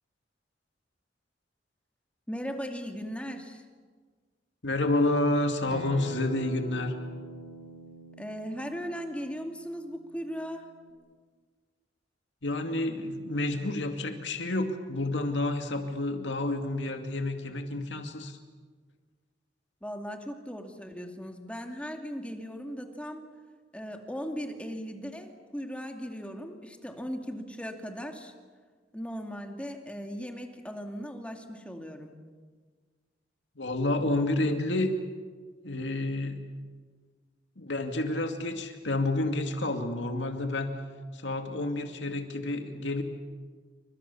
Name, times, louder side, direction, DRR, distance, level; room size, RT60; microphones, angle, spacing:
voice 1, 2.3-3.6 8.2-10.7 19.8-23.3 23.7-28.3 28.9-32.2, equal, 5° left, 4 dB, 2.4 m, -38 dB
voice 2, 4.6-7.0 12.4-18.4 33.6-34.9 35.6-36.4 37.6-40.7 41.1-43.0, left 2 dB, 80° left, 5 dB, 2.4 m, -29 dB
Acoustic guitar, 5.7-10.9, right 1 dB, 60° right, 6.9 m, -44 dB
29.5 x 25.5 x 7.1 m, 1.5 s
head